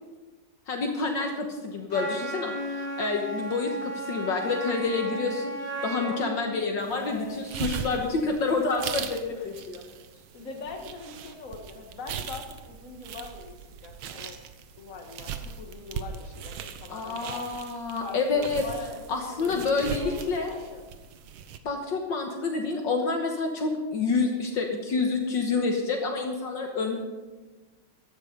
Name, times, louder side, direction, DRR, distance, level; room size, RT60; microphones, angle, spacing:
voice 1, 0.7-5.5 5.8-9.8 16.9-18.6 19.1-20.5 21.6-27.0, left 4 dB, 65° left, 2 dB, 1.9 m, -28 dB
Wind instrument woodwind instrument, 1.9-6.4, right 1 dB, 40° right, 5.3 m, -34 dB
voice 2, 6.8-7.4 9.3-9.5 10.3-14.4 14.8-17.4 17.9-20.9, left 4 dB, 40° left, 3 dB, 2.0 m, -42 dB
sound 1, 6.8-21.6, right 7 dB, 80° right, 1.7 m, -40 dB
15.0 x 11.5 x 5.3 m, 1.3 s
omnidirectional pair, 2.2 m